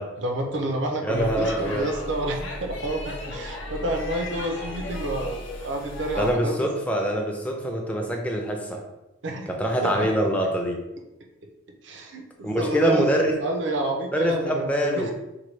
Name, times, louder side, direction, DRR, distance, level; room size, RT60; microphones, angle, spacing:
voice 1, 0.2-6.7 9.2-9.6 9.8-10.1 11.4-11.5 11.8-13.1 13.4-15.1, right 1 dB, 70° right, 3 dB, 0.5 m, -29 dB
voice 2, 1.0-1.9 6.2-8.8 9.5-10.8 12.4-13.3 14.1-15.1, right 1 dB, 5° left, 1 dB, 0.5 m, -24 dB
Speech / Shout / Subway metro underground, 1.1-6.4, left 1 dB, 75° left, 0.7 m, -35 dB
4.5 x 2.2 x 3.1 m, 0.96 s
head